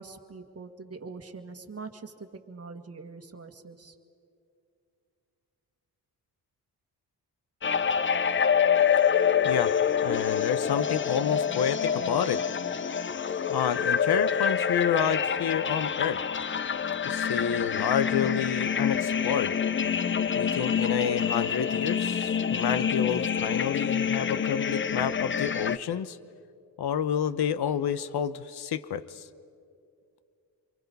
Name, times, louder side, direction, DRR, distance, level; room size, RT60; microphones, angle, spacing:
voice 1, 0.0-3.9, right 4 dB, 35° right, 5 dB, 1.8 m, -43 dB
sound 1, 7.6-25.8, left 7 dB, 30° left, 0.6 m, -26 dB
voice 2, 10.0-12.4 13.5-16.2 17.0-19.5 20.4-26.2 26.8-29.3, left 8 dB, 70° left, 14 dB, 1.0 m, -29 dB
27.5 x 23.5 x 5.4 m, 2.4 s
cardioid pair, 85°, 40 cm